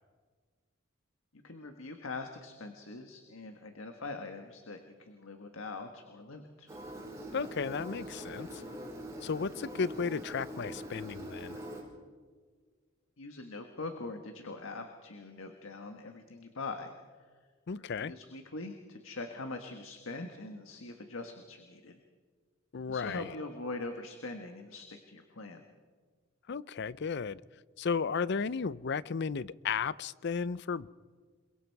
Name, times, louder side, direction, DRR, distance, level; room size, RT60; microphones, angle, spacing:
voice 1, 1.4-6.7 13.2-16.9 17.8-22.0 22.9-25.7, left 3 dB, 80° left, 5 dB, 1.5 m, -42 dB
Engine, 6.7-11.8, right 1 dB, 15° right, 6.2 m, -43 dB
voice 2, 7.3-8.6 9.2-11.6 17.7-18.1 22.7-23.3 26.5-27.4 27.8-30.9, left 5 dB, 55° left, 19 dB, 0.5 m, -34 dB
28.0 x 22.5 x 4.7 m, 1.5 s
head